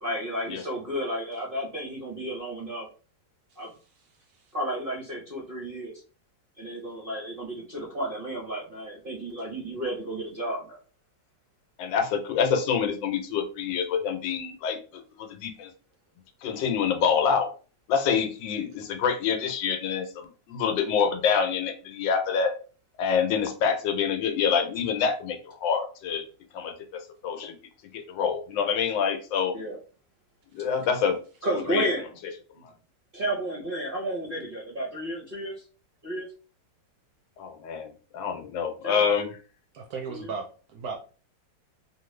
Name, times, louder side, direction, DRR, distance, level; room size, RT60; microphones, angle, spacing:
voice 1, 0.0-2.9 3.6-3.7 4.5-5.9 6.6-10.8 29.5-29.8 31.4-32.1 33.1-35.6 36.0-36.3 38.8-39.0 40.1-40.3, right 1 dB, 45° right, -4 dB, 0.7 m, -32 dB
voice 2, 11.8-15.7 16.4-17.5 17.9-22.5 23.0-26.2 26.5-27.5 27.9-29.5 30.5-31.2 31.7-31.9 37.4-39.4, left 6 dB, 80° left, 5 dB, 1.3 m, -26 dB
voice 3, 39.7-41.0, right 5 dB, 70° right, 2 dB, 1.0 m, -36 dB
3.0 x 2.4 x 3.1 m, 0.37 s
omnidirectional pair, 2.0 m